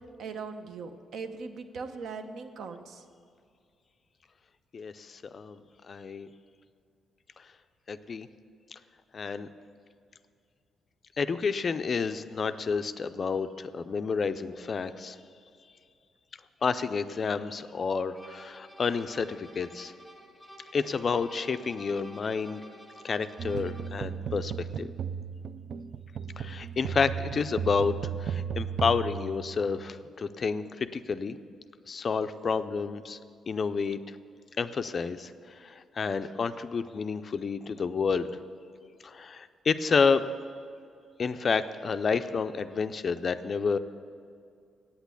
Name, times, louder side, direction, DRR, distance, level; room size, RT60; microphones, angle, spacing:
voice 1, 0.2-3.0, right 4 dB, 65° right, 8 dB, 0.8 m, -39 dB
voice 2, 4.7-5.6 5.9-6.3 7.9-8.3 8.7-8.8 9.1-9.5 11.2-15.2 16.6-19.9 20.7-22.6 23.0-24.5 24.8-24.9 26.4-27.9 28.2-31.4 31.9-33.2 33.5-34.0 34.6-35.3 35.6-38.3 39.0-40.2 41.2-43.8, left 5 dB, 35° left, 11 dB, 0.4 m, -29 dB
sound 1, 18.2-24.1, equal, 10° right, 1.0 m, -51 dB
sound 2, 23.4-30.0, right 7 dB, 50° right, 0.3 m, -35 dB
8.7 x 8.2 x 8.3 m, 2.3 s
cardioid pair, 140°, 0 cm